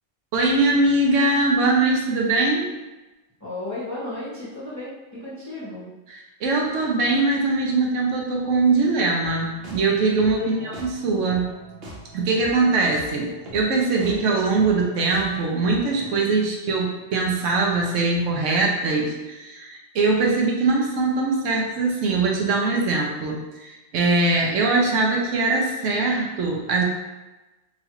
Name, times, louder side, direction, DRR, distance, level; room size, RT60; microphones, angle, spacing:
voice 1, 0.3-2.7 6.4-11.5 12.1-26.8, right 3 dB, 80° right, -1 dB, 1.0 m, -22 dB
voice 2, 3.4-5.9 10.4-10.7, left 2 dB, 15° left, -10 dB, 0.7 m, -34 dB
sound 1, 9.2-16.2, right 1 dB, 60° right, 0.9 m, -42 dB
3.0 x 2.4 x 2.9 m, 1.1 s
omnidirectional pair, 1.3 m